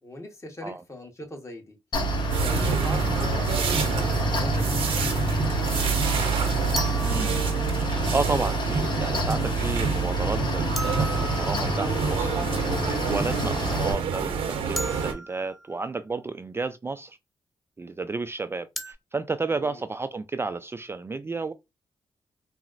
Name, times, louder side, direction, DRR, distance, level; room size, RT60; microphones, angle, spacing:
voice 1, 0.0-1.8 2.4-6.1 19.5-19.8, left 1 dB, 30° left, 1.2 m, -41 dB
Mechanical fan, 1.9-13.9, right 2 dB, 55° left, 0.9 m, -27 dB
sound 1, 2.3-15.1, right 5 dB, 80° right, 0.7 m, -29 dB
sound 2, 6.8-8.0 10.8-12.1 14.8-16.0 18.8-18.9, right 2 dB, ahead, 0.8 m, -37 dB
voice 2, 7.0-7.3 7.7-17.2 17.8-21.5, right 3 dB, 25° right, 0.3 m, -32 dB
4.0 x 2.0 x 2.5 m
supercardioid pair, 50°, 9 cm